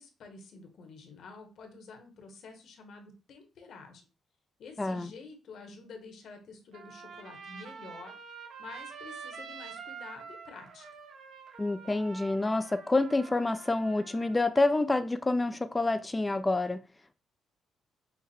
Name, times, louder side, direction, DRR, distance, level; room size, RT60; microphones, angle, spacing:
voice 1, 0.0-4.1 4.6-8.1 8.6-10.9, left 4 dB, 65° left, 1.2 m, -49 dB
voice 2, 4.8-5.1 11.6-16.8, left 2 dB, 20° left, 0.3 m, -28 dB
Trumpet, 6.7-14.4, right 6 dB, 65° right, 1.1 m, -46 dB
5.8 x 2.1 x 4.2 m
cardioid pair, 90°, 0 cm